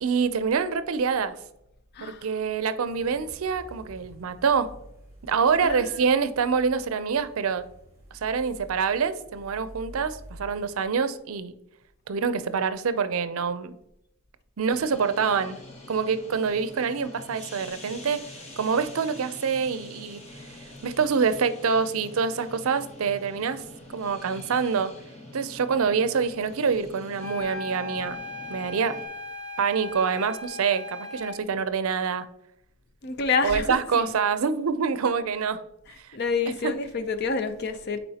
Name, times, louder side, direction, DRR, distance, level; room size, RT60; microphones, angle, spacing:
voice 1, 0.0-1.3 2.0-4.7 5.3-7.6 8.2-11.5 12.1-13.7 14.6-15.6 15.9-18.2 18.6-20.2 20.8-24.9 25.3-28.2 28.5-28.9 29.6-32.2 33.4-35.6 36.6-36.7, right 5 dB, 75° right, 0.5 m, -26 dB
voice 2, 1.9-2.3 5.6-6.0 33.0-34.2 35.9-38.0, left 4 dB, 50° left, 0.5 m, -28 dB
sound 1, 2.8-10.8, equal, 15° right, 2.3 m, -49 dB
sound 2, 14.7-29.1, left 1 dB, 30° left, 0.9 m, -45 dB
sound 3, 27.2-31.4, left 2 dB, 85° left, 2.0 m, -37 dB
8.6 x 4.3 x 2.8 m
head